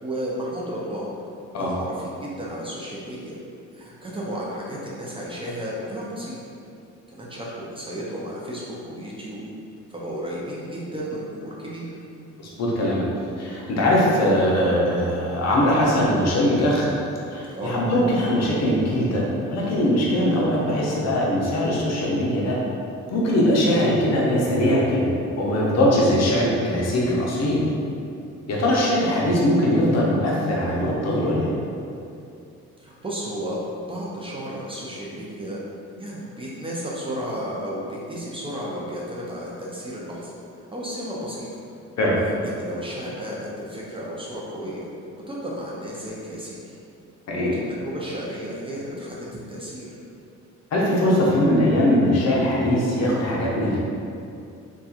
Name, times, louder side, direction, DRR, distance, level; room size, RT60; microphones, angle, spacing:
voice 1, 0.0-1.1 1.6-3.4 3.7-6.4 7.1-9.4 9.9-11.9 17.5-17.7 32.8-33.6 33.9-35.6 36.0-40.3 40.7-41.5 42.6-44.8 45.3-46.7 47.3-49.2 49.5-49.9, equal, 20° right, -6 dB, 0.5 m, -33 dB
voice 2, 12.6-13.1 13.4-16.9 17.2-22.6 23.1-25.1 25.4-27.6 28.5-31.5 42.0-42.2 47.3-47.5 50.7-53.8, left 1 dB, 60° left, -4 dB, 0.6 m, -21 dB
2.8 x 2.3 x 2.3 m, 2.6 s
cardioid pair, 90°, 30 cm